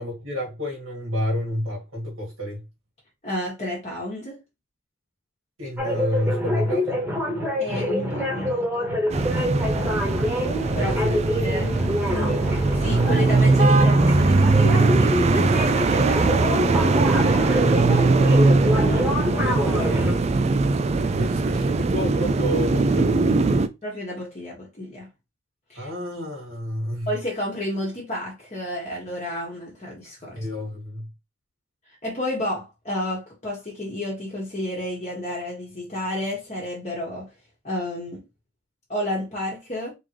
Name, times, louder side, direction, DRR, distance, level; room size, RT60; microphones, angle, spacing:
voice 1, 0.0-2.6 5.6-7.0 9.4-9.7 10.7-11.7 18.5-20.2 21.0-23.7 25.7-27.1 30.3-31.1, left 1 dB, 70° right, 1.7 m, -30 dB
voice 2, 3.2-4.4 7.6-8.9 10.7-11.0 11.4-11.7 12.0-17.0 23.8-25.1 25.7-25.9 27.1-30.4 32.0-37.3 37.6-38.2 38.9-39.9, left 1 dB, 35° left, 1.3 m, -31 dB
sound 1, 5.8-20.1, left 1 dB, 10° right, 1.3 m, -26 dB
sound 2, 9.1-23.7, right 3 dB, 30° right, 0.3 m, -20 dB
3.7 x 3.6 x 3.0 m
head